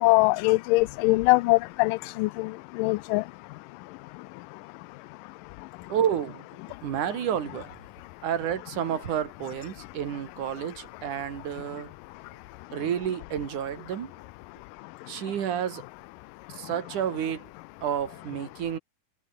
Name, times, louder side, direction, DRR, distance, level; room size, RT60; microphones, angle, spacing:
voice 1, 0.0-2.5 2.8-3.2, left 22 dB, 80° left, 2.2 m, -22 dB
voice 2, 5.9-6.4 6.8-7.8 8.2-11.9 12.7-14.1 15.1-15.8 16.5-17.5 17.8-18.8, right 9 dB, 65° right, 3.5 m, -30 dB
omnidirectional pair, 3.9 m